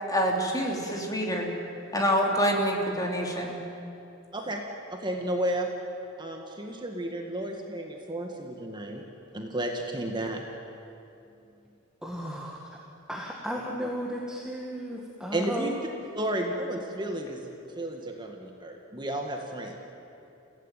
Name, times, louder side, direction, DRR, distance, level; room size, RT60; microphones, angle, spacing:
voice 1, 0.0-1.5 1.9-3.6, equal, 20° left, 0 dB, 3.5 m, -26 dB
voice 2, 4.9-5.7 6.2-9.0 9.3-10.4 15.3-15.7 16.2-19.9, right 1 dB, 20° right, 2 dB, 1.9 m, -32 dB
voice 3, 12.0-12.7 13.1-15.8, equal, 5° right, -2 dB, 1.9 m, -34 dB
30.0 x 17.0 x 9.2 m, 2.8 s
head